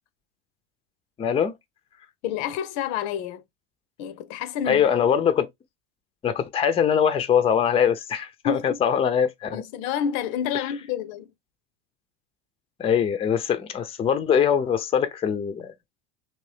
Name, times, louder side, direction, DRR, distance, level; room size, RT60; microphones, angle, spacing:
voice 1, 1.2-1.5 4.7-5.5 6.2-9.6 12.8-15.7, left 8 dB, 15° left, 0.4 m, -22 dB
voice 2, 2.2-3.4 4.0-4.9 8.4-8.8 9.5-11.3, left 8 dB, 70° left, 0.6 m, -29 dB
3.1 x 2.7 x 3.2 m
supercardioid pair, 100°, 36 cm